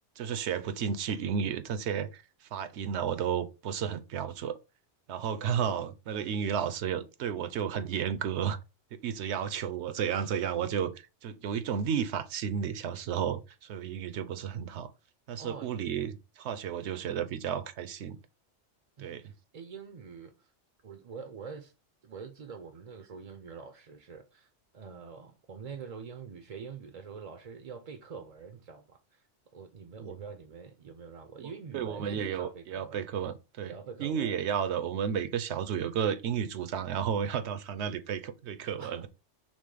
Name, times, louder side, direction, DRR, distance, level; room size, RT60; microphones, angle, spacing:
voice 1, 0.2-2.2 2.5-4.6 5.1-8.6 8.9-14.9 15.3-18.2 19.0-19.3 30.0-30.1 31.4-33.7 34.0-39.1, right 8 dB, 70° right, 0.8 m, -32 dB
voice 2, 15.4-15.7 19.0-20.5 20.8-21.7 22.0-24.5 24.7-29.2 29.5-33.1 33.6-34.3 38.8-39.1, right 5 dB, 50° right, 0.5 m, -45 dB
6.1 x 2.1 x 3.8 m
omnidirectional pair, 1.2 m